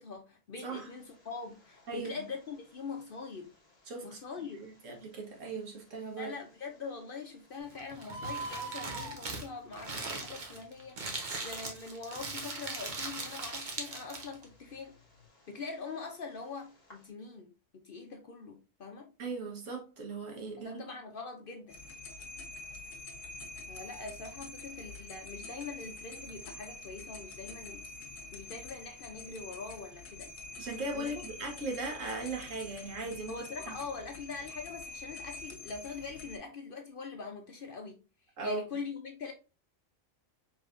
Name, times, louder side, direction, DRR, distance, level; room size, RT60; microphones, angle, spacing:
voice 1, 0.0-3.5 4.0-4.7 6.2-14.9 15.5-19.1 20.6-21.8 23.7-27.8 28.3-30.3 30.9-31.2 33.3-38.0 38.4-39.3, left 4 dB, 55° left, 0.7 m, -43 dB
Bird, 0.7-17.1, right 3 dB, 30° left, 1.3 m, -50 dB
voice 2, 3.9-4.2 4.6-6.3 19.2-20.8 30.6-33.3 38.4-38.6, right 3 dB, 75° right, 1.5 m, -38 dB
Crumpling crinkling, 7.7-14.4, right 3 dB, 40° right, 0.9 m, -40 dB
sound 1, 21.7-36.4, left 2 dB, 70° left, 1.1 m, -46 dB
4.9 x 3.2 x 2.5 m
omnidirectional pair, 1.4 m